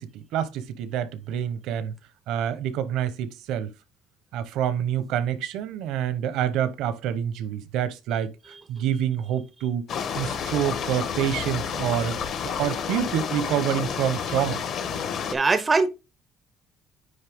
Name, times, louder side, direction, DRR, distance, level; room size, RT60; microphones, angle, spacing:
voice 1, 0.0-2.0 2.3-3.7 4.3-8.3 8.7-9.9 10.1-12.2 12.4-14.6, right 10 dB, 75° right, 0.9 m, -27 dB
sound 1, 9.9-15.3, left 7 dB, 45° left, 1.0 m, -30 dB
voice 2, 15.3-15.9, right 3 dB, 15° right, 0.6 m, -21 dB
9.6 x 3.3 x 3.6 m
cardioid pair, 175°, 0 cm